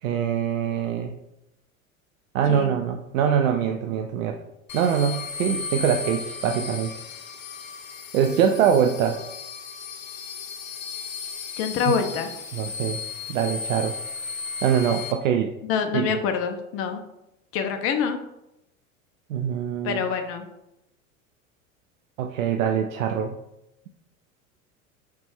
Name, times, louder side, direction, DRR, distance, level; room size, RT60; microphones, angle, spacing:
voice 1, 0.0-1.1 2.3-4.4 4.7-6.9 8.1-9.2 11.9-12.0 12.5-13.0 13.3-14.0 14.6-15.5 15.9-16.2 19.3-20.0 22.2-23.4, right 8 dB, 70° right, 5 dB, 0.5 m, -23 dB
voice 2, 2.5-2.8 11.6-12.3 15.6-17.0 17.5-18.2 19.8-20.5, left 7 dB, 35° left, 6 dB, 0.6 m, -26 dB
sound 1, 4.7-15.1, left 6 dB, 75° left, 0.7 m, -35 dB
4.2 x 3.2 x 3.4 m, 0.86 s
figure-of-eight pair, 80°, 41 cm